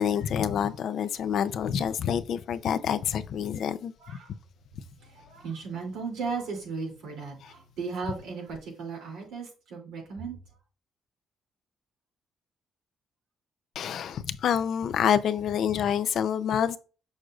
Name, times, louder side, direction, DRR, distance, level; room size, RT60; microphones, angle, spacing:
voice 1, 0.0-3.9 13.8-16.8, left 8 dB, 70° left, 0.5 m, -27 dB
voice 2, 4.0-4.3 5.0-10.4, right 4 dB, 90° right, 2.8 m, -36 dB
6.4 x 6.3 x 2.4 m
cardioid pair, 90°, 0 cm